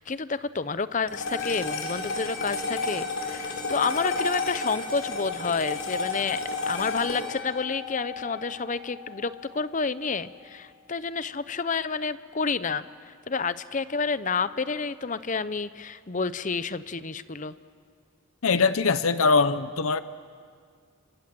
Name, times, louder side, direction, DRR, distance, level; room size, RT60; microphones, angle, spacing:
voice 1, 0.0-17.5, left 4 dB, 35° left, 15 dB, 0.7 m, -30 dB
sound 1, 1.1-9.6, left 3 dB, 70° left, 4.6 m, -32 dB
voice 2, 18.4-20.0, left 4 dB, 85° left, 13 dB, 0.8 m, -22 dB
28.5 x 25.0 x 7.7 m, 2.1 s
head